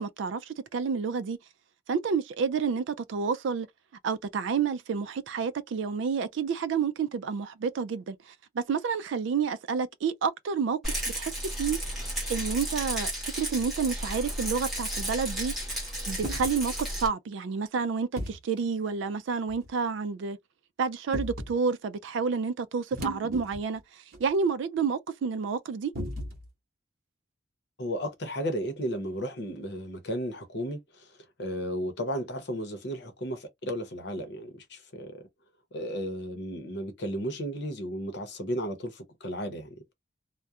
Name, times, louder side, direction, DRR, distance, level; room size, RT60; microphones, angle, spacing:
voice 1, 0.0-1.4 1.9-3.7 4.0-15.5 16.1-20.4 20.8-25.9, right 5 dB, 70° right, 0.3 m, -30 dB
Rattle, 10.8-17.1, equal, ahead, 0.9 m, -33 dB
sound 1, 16.2-16.5 18.2-18.4 19.5-19.7 21.1-21.6 22.9-23.8 24.1-24.2 25.9-26.5, equal, 50° right, 0.9 m, -35 dB
voice 2, 27.8-31.1 31.4-35.2 35.7-39.9, equal, 55° left, 0.7 m, -34 dB
2.3 x 2.1 x 2.7 m
head